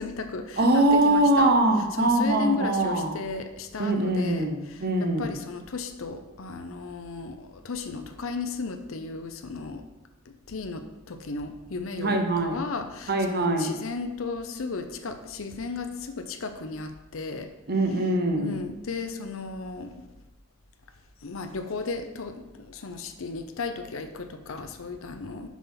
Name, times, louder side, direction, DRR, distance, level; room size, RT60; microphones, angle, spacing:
voice 1, 0.0-1.5 2.0-9.8 10.5-17.5 18.3-19.9 21.2-25.5, left 4 dB, 85° left, 7 dB, 0.7 m, -35 dB
voice 2, 0.6-3.2 3.8-5.3 12.0-12.6 13.1-13.7 17.7-18.6, right 1 dB, 50° right, 4 dB, 0.9 m, -23 dB
7.4 x 4.2 x 5.6 m, 1.0 s
head